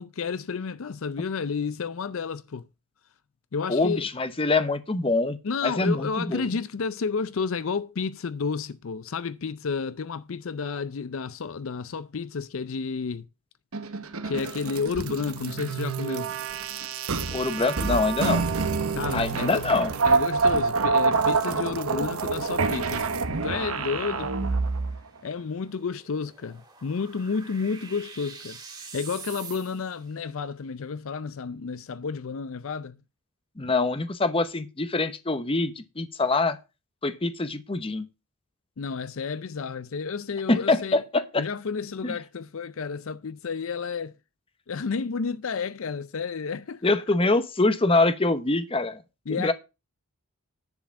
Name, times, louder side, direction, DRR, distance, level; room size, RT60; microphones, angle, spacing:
voice 1, 0.0-2.7 3.5-4.1 5.4-13.3 14.2-16.3 18.9-19.6 20.0-24.5 25.2-33.0 38.8-41.0 41.4-44.2 44.7-46.8 49.3-49.5, left 5 dB, 65° left, 0.5 m, -31 dB
voice 2, 3.7-6.5 17.3-18.4 19.1-19.9 33.6-36.6 37.0-38.1 40.5-41.4 42.0-42.1 46.8-49.0 49.3-49.5, left 3 dB, 25° left, 0.9 m, -24 dB
sound 1, 13.7-25.0, right 4 dB, 75° right, 1.1 m, -27 dB
sound 2, 22.7-30.1, right 5 dB, 20° right, 2.4 m, -47 dB
10.5 x 4.8 x 7.2 m
head